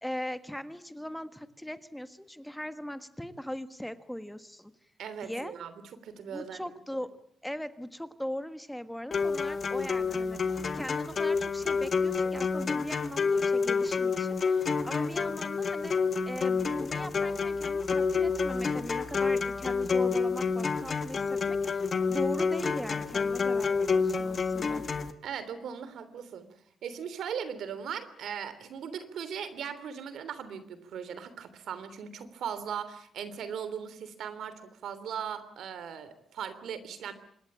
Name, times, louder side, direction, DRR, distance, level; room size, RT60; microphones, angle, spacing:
voice 1, 0.0-4.7 5.2-5.5 6.3-16.0 16.2-24.8, equal, 5° left, 11 dB, 1.4 m, -39 dB
voice 2, 5.0-5.7 6.0-6.7 25.2-26.5 26.8-37.1, right 7 dB, 85° right, 13 dB, 3.2 m, -38 dB
sound 1, 9.1-25.1, left 5 dB, 45° left, 1.7 m, -29 dB
25.5 x 21.0 x 8.8 m, 0.65 s
cardioid pair, 120°, 0 cm